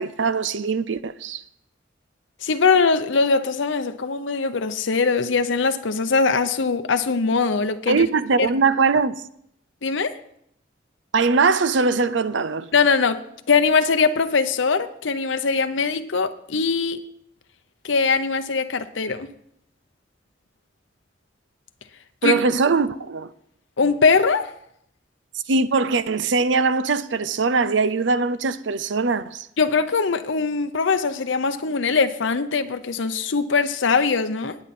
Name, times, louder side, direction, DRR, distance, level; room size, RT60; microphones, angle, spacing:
voice 1, 0.0-1.4 7.9-9.2 11.1-12.7 22.2-23.3 25.5-29.5, right 4 dB, 80° right, 0.6 m, -21 dB
voice 2, 2.4-8.0 8.4-8.5 9.8-10.2 12.7-13.2 13.5-17.0 17.8-19.3 22.2-22.4 23.8-24.5 29.6-34.6, left 4 dB, 90° left, 0.8 m, -21 dB
19.0 x 9.0 x 4.3 m
head